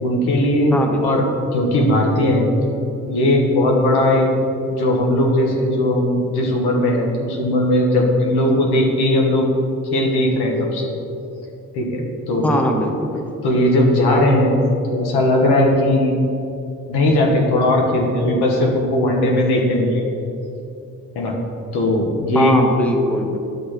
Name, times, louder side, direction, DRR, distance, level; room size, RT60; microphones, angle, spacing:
voice 1, 0.0-0.7 1.0-1.3 1.5-2.7 3.1-4.3 4.7-9.5 9.8-10.9 11.7-12.6 13.4-14.6 14.9-16.2 16.9-20.1 21.1-21.4 21.7-22.6, left 1 dB, 70° left, 0 dB, 1.3 m, -18 dB
voice 2, 0.7-1.2 12.4-13.2 22.3-23.4, equal, 5° left, 2 dB, 1.0 m, -21 dB
11.5 x 6.4 x 3.0 m, 2.8 s
hypercardioid pair, 50°, 40 cm